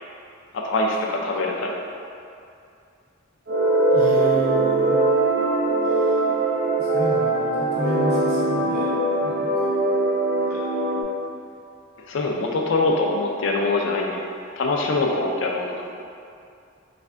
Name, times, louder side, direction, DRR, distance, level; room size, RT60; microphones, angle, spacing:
voice 1, 0.5-1.7 12.1-14.2 14.6-15.9, left 2 dB, 70° left, 0 dB, 0.4 m, -23 dB
sound 1, 3.5-11.0, right 2 dB, 80° right, 0.5 m, -21 dB
voice 2, 3.9-5.0 5.8-6.2 6.8-9.7 10.5-10.6, equal, 55° right, -8 dB, 0.9 m, -31 dB
3.4 x 2.5 x 3.3 m, 2.5 s
head